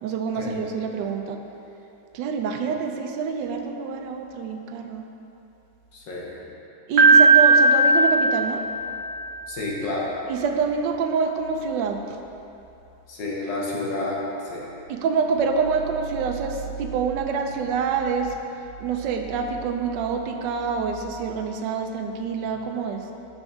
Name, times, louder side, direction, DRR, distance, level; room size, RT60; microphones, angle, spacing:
voice 1, 0.0-1.4 2.1-5.0 6.9-8.6 10.3-12.2 14.9-18.3 18.8-23.0, right 5 dB, 85° right, 4 dB, 1.3 m, -26 dB
voice 2, 5.9-6.5 9.5-10.1 13.1-14.7, left 2 dB, 85° left, -4 dB, 1.9 m, -30 dB
Piano, 7.0-9.1, right 3 dB, 70° right, 1.4 m, -16 dB
7.1 x 7.0 x 3.4 m, 2.9 s
omnidirectional pair, 1.9 m